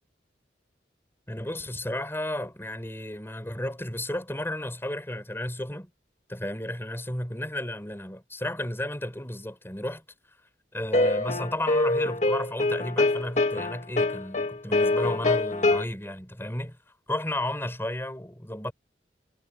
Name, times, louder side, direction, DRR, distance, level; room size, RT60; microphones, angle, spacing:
voice 1, 1.3-5.9 6.3-10.0 10.7-16.8 17.1-18.7, left 1 dB, 15° left, 5.5 m, -33 dB
sound 1, 10.9-15.8, left 2 dB, 40° left, 2.5 m, -24 dB
head